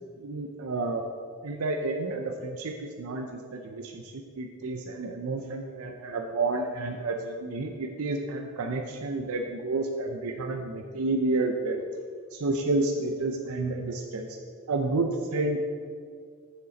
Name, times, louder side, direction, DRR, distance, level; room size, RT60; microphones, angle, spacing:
voice 1, 0.2-1.0 1.4-11.9 12.3-14.4 14.7-15.6, right 2 dB, 80° right, 3 dB, 0.5 m, -30 dB
7.5 x 6.8 x 4.0 m, 2.1 s
head